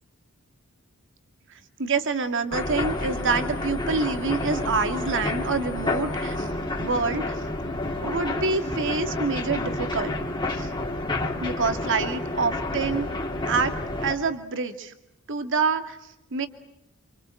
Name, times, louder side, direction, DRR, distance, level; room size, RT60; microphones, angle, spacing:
voice 1, 1.8-6.5 6.8-7.4 8.0-10.2 10.5-10.7 11.4-13.1 13.5-13.7 14.0-14.9 15.3-16.0 16.3-16.5, right 4 dB, 60° right, 8 dB, 2.2 m, -26 dB
sound 1, 2.5-14.1, left 2 dB, 20° left, 2.7 m, -29 dB
27.5 x 26.5 x 7.8 m, 0.81 s
head